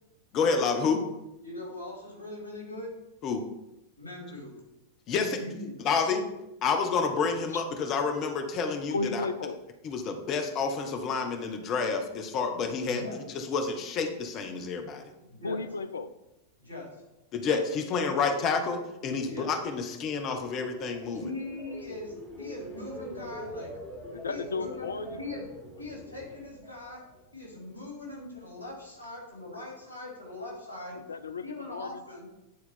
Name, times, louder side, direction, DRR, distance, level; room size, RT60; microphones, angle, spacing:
voice 1, 0.3-1.0 3.2-3.4 5.1-5.4 5.8-6.3 6.6-9.2 9.8-13.0 13.3-15.0 17.3-21.2, left 5 dB, 35° left, 5 dB, 0.9 m, -29 dB
voice 2, 1.4-2.9 4.0-4.6 5.1-5.9 12.9-13.2 15.3-15.6 16.6-17.1 19.0-19.5 21.2-23.8 24.3-25.5 25.8-27.0 27.3-31.0 31.4-32.3, left 2 dB, 90° right, -2 dB, 2.6 m, -41 dB
voice 3, 8.9-9.6 15.4-16.1 17.7-18.1 24.1-25.2 30.9-32.0, left 3 dB, 70° left, 12 dB, 0.4 m, -34 dB
sound 1, 20.4-27.5 27.9-28.3, right 1 dB, 10° left, 2.6 m, -44 dB
9.4 x 4.1 x 4.3 m, 0.92 s
figure-of-eight pair, 90°, 0 cm